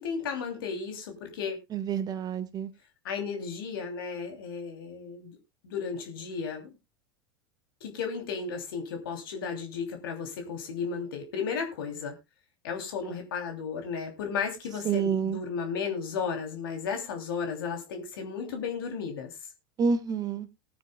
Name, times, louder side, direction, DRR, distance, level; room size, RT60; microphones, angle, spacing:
voice 1, 0.0-1.6 3.0-5.4 5.6-6.8 7.8-12.1 12.6-19.3, left 6 dB, 65° left, 2.8 m, -34 dB
voice 2, 1.7-2.7 14.8-15.4 19.8-20.5, right 6 dB, 30° right, 1.4 m, -28 dB
19.5 x 9.5 x 2.2 m
figure-of-eight pair, 85°, 13 cm